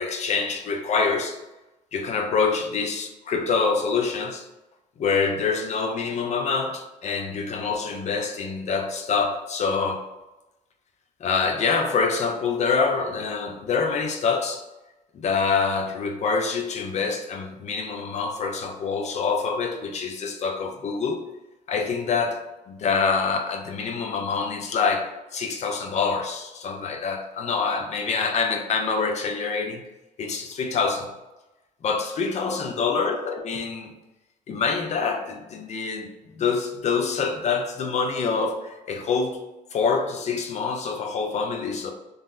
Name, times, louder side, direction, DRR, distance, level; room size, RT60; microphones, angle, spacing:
voice 1, 0.0-1.4 1.9-4.5 5.0-10.0 11.2-14.6 15.1-21.2 21.7-29.8 30.2-31.1 31.8-33.9 34.5-36.1 36.3-39.4 39.7-41.9, left 5 dB, 45° left, 4 dB, 0.4 m, -26 dB
3.7 x 2.1 x 2.5 m, 0.99 s
cardioid pair, 110°, 17 cm